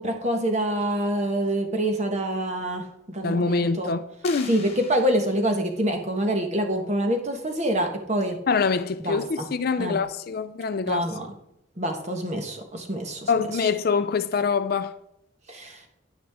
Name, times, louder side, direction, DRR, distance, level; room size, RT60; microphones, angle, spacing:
voice 1, 0.0-3.9 4.5-8.4 9.0-9.5 9.8-10.0 10.8-11.3 11.8-13.3 13.6-13.7 15.5-16.0, right 1 dB, 35° right, 1.4 m, -26 dB
voice 2, 3.2-4.5 8.5-11.1 13.3-15.0, left 5 dB, 50° left, 0.4 m, -25 dB
sound 1, 4.2-5.8, left 6 dB, 35° left, 1.5 m, -42 dB
9.7 x 9.5 x 3.6 m
head